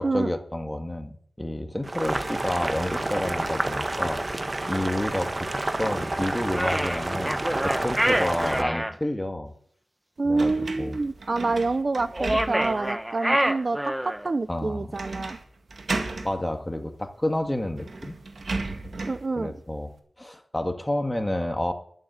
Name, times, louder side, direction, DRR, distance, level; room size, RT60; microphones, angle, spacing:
voice 1, 0.0-4.2 4.6-5.5 5.8-7.4 7.6-9.5 10.2-11.0 14.5-14.9 16.2-18.2 19.4-19.9 20.2-21.7, left 1 dB, 15° left, 5 dB, 2.0 m, -29 dB
Boiling, 1.8-8.6, right 2 dB, 40° right, 1.2 m, -29 dB
sound 1, 6.5-8.9 12.1-14.3, right 1 dB, 10° right, 0.9 m, -26 dB
voice 2, 10.2-15.4 19.1-19.5, right 3 dB, 55° right, 15 dB, 0.5 m, -27 dB
sound 2, 10.4-12.9 13.4-13.5 14.9-15.4 15.7-16.3 17.3-17.4 17.8-19.3, right 3 dB, 70° right, 2.0 m, -34 dB
12.0 x 7.2 x 8.5 m, 0.62 s
cardioid pair, 40°, 0 cm